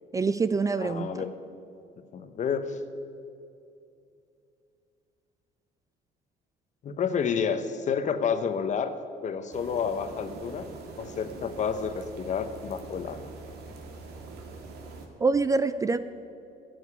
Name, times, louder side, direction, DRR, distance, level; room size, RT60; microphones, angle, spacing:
voice 1, 0.1-1.1 15.2-16.0, right 4 dB, 20° right, 13 dB, 0.4 m, -25 dB
voice 2, 0.8-1.4 2.1-2.8 6.8-9.0 9.2-10.7 11.0-13.3, left 6 dB, 45° left, 10 dB, 1.0 m, -30 dB
sound 1, 9.5-15.1, right 3 dB, 70° right, 2.0 m, -44 dB
13.0 x 7.9 x 9.7 m, 2.6 s
cardioid pair, 110°, 17 cm